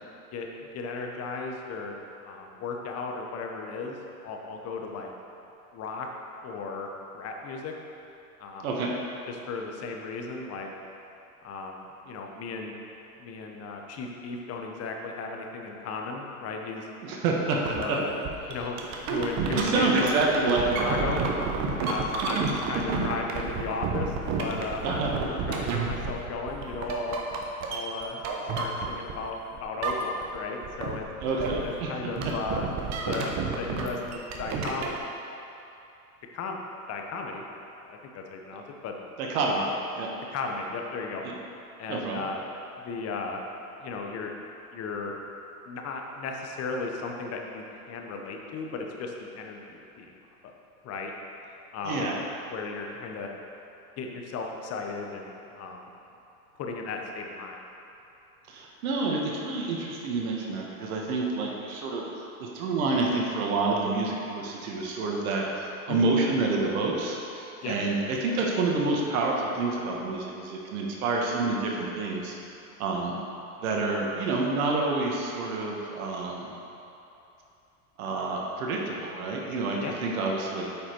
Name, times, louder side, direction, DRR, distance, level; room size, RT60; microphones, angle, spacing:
voice 1, 0.3-4.0 4.2-5.1 5.7-6.1 6.4-7.7 8.4-8.7 9.3-10.7 11.4-12.7 13.2-16.9 17.5-18.1 18.5-21.2 21.8-27.2 27.7-28.2 28.6-31.1 31.6-34.9 36.3-36.6 36.9-37.4 37.8-39.0 39.5-39.7 40.3-41.2 41.8-42.5 42.8-43.4 43.8-44.3 44.7-45.1 45.7-50.1 50.4-50.5 50.8-51.1 51.7-52.2 52.5-53.3 54.0-55.9 56.6-57.6 65.9-66.0 67.6-67.8 79.8-80.0, left 4 dB, 35° left, 2 dB, 1.0 m, -35 dB
voice 2, 17.0-17.6 17.9-18.0 19.5-21.2 24.8-25.1 31.2-31.9 39.2-39.7 40.0-40.1 41.9-42.2 51.8-52.3 58.5-62.0 62.4-72.3 72.8-73.1 73.6-76.5 78.0-80.8, right 3 dB, 70° right, -1 dB, 1.5 m, -28 dB
sound 1, 17.7-17.9 18.2-29.3 29.6-30.4 30.6-35.0, right 4 dB, 40° right, 1.1 m, -30 dB
8.4 x 5.3 x 4.6 m, 2.8 s
hypercardioid pair, 110°, 45 cm